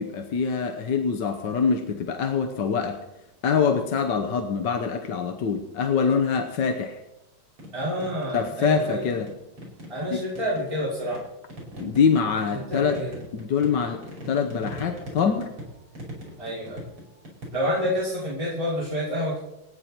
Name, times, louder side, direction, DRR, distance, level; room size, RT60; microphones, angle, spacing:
voice 1, 0.0-3.0 3.4-7.0 8.3-9.3 10.1-10.2 11.8-13.0 13.3-15.5, left 6 dB, 60° left, 4 dB, 1.6 m, -24 dB
sound 1, 7.6-8.4 8.7-10.1 10.4-18.0, equal, 80° right, 6.1 m, -40 dB
voice 2, 7.7-9.1 9.9-11.2 12.5-13.1 16.4-16.8 17.5-19.4, equal, 15° right, -9 dB, 5.6 m, -28 dB
28.5 x 9.5 x 4.4 m, 0.91 s
omnidirectional pair, 2.3 m